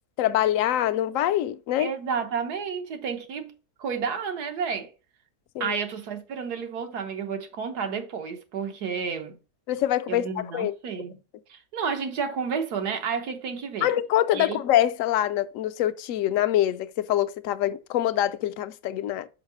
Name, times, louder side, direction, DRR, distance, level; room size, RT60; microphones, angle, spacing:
voice 1, 0.2-1.9 5.5-5.8 9.7-10.2 10.5-10.7 13.8-19.3, left 12 dB, 70° left, 0.9 m, -24 dB
voice 2, 1.8-3.5 3.8-4.9 5.6-9.3 10.1-11.2 11.5-13.9 14.3-14.6, right 6 dB, 85° right, 1.6 m, -31 dB
5.7 x 5.5 x 4.8 m
omnidirectional pair, 1.6 m